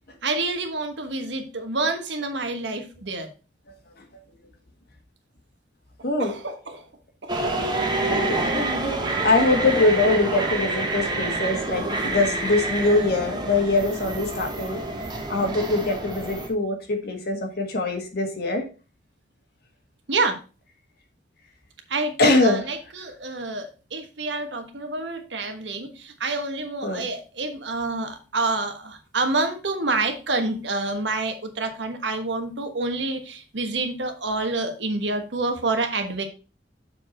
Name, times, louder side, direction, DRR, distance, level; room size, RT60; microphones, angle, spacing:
voice 1, 0.2-3.3 6.2-6.9 7.2-7.3 20.1-20.4 21.9-36.2, right 3 dB, 80° right, 6 dB, 1.3 m, -28 dB
sound 1, 7.3-16.5, right 2 dB, 25° right, 1.3 m, -27 dB
voice 2, 8.1-14.8 15.3-18.6 22.2-22.6 26.8-27.0, left 2 dB, 60° left, 3 dB, 1.6 m, -23 dB
7.0 x 4.6 x 4.4 m, 0.33 s
head